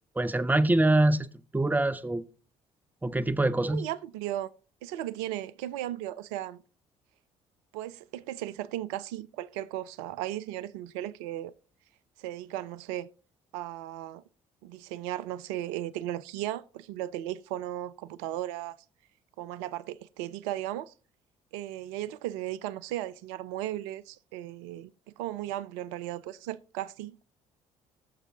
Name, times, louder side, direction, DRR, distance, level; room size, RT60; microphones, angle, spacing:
voice 1, 0.1-2.2 3.0-3.9, right 2 dB, 10° right, 0.7 m, -25 dB
voice 2, 3.7-4.5 4.8-6.6 7.7-11.5 12.2-13.1 13.5-14.2 14.6-18.8 19.4-20.9 21.5-24.9 25.2-27.2, right 13 dB, 65° right, 0.5 m, -36 dB
20.0 x 6.8 x 2.9 m
figure-of-eight pair, 50°, 18 cm